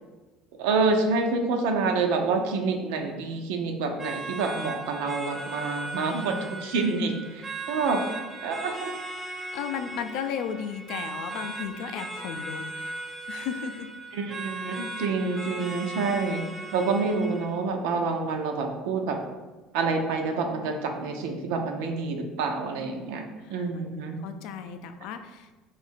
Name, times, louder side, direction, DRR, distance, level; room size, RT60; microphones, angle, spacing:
voice 1, 0.6-8.0 8.4-8.9 14.1-16.4 16.7-19.2 19.7-23.2 23.5-24.2, right 4 dB, 85° right, 4 dB, 0.5 m, -27 dB
sound 1, 4.0-17.6, right 2 dB, 10° right, 0.5 m, -38 dB
voice 2, 9.5-12.9 13.3-13.9 23.4-23.8 24.2-25.6, left 7 dB, 70° left, 8 dB, 0.3 m, -35 dB
2.8 x 2.4 x 4.2 m, 1.2 s
cardioid pair, 120°, 0 cm